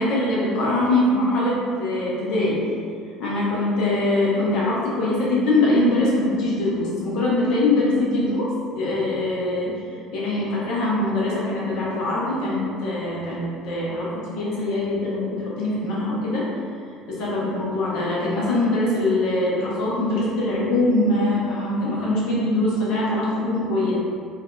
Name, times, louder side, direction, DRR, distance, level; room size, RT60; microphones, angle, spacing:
voice 1, 0.0-2.7 3.2-9.8 10.1-16.4 17.1-23.9, left 2 dB, 60° left, -6 dB, 0.9 m, -23 dB
2.6 x 2.5 x 3.7 m, 2.3 s
hypercardioid pair, 60°, 0 cm